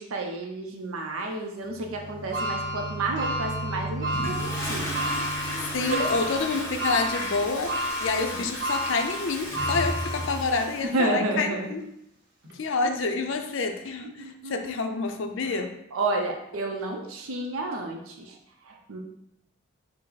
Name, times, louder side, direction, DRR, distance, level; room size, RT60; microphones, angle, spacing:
voice 1, 0.0-4.9 5.3-5.6 5.9-6.1 10.8-11.7 14.2-14.7 15.9-18.4 18.6-19.0, right 2 dB, 80° right, 2 dB, 0.5 m, -31 dB
sound 1, 1.7-6.4, right 2 dB, 30° right, 0.6 m, -36 dB
sound 2, 2.3-10.7 11.2-11.3 12.4-12.5, equal, 50° right, 1.1 m, -32 dB
Toilet flush, 4.1-10.9, left 1 dB, 10° left, 0.8 m, -34 dB
voice 2, 5.7-11.8 12.5-15.7, left 3 dB, 65° left, 6 dB, 0.4 m, -28 dB
5.3 x 2.0 x 3.9 m, 0.78 s
head